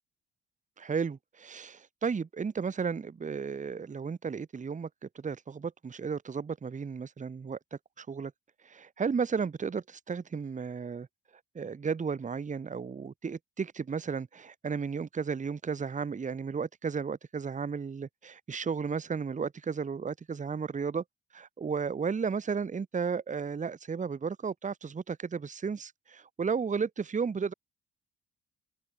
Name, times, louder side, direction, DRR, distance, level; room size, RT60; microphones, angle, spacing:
voice 1, 0.8-4.9 5.1-8.3 8.6-11.1 11.5-21.0 21.3-27.5, right 5 dB, 25° right, 0.9 m, -34 dB
open air
cardioid pair, 90°, 30 cm